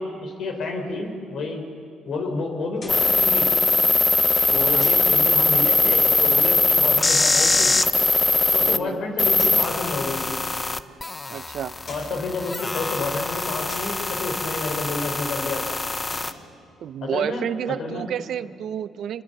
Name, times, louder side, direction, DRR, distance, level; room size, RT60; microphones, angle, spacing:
voice 1, 0.0-1.6 2.1-3.6 4.5-7.8 8.5-10.4 11.9-15.7 17.0-18.0, left 3 dB, 70° left, 3 dB, 4.2 m, -30 dB
sound 1, 2.8-3.2 4.8-5.2 7.3-7.9 9.4-9.7 11.7-12.2 13.7-14.0 15.9-16.4, left 2 dB, 40° left, 7.7 m, -42 dB
sound 2, 2.9-8.8 9.2-16.3, left 3 dB, 25° left, 0.8 m, -21 dB
voice 2, 4.5-4.9 8.6-9.0 11.3-11.7 16.8-19.2, right 9 dB, 70° right, 14 dB, 0.7 m, -30 dB
26.5 x 21.5 x 6.8 m, 2.4 s
cardioid pair, 90°, 0 cm